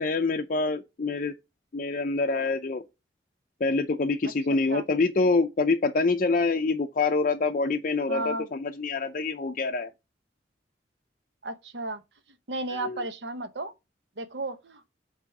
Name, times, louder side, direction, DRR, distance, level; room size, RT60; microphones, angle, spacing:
voice 1, 0.0-1.3 1.7-2.8 3.6-9.9 12.8-13.0, left 3 dB, 50° left, 0.5 m, -26 dB
voice 2, 8.1-8.5 11.4-12.0 12.5-13.7 14.2-14.9, right 2 dB, 75° right, 0.9 m, -33 dB
8.1 x 3.0 x 4.7 m
head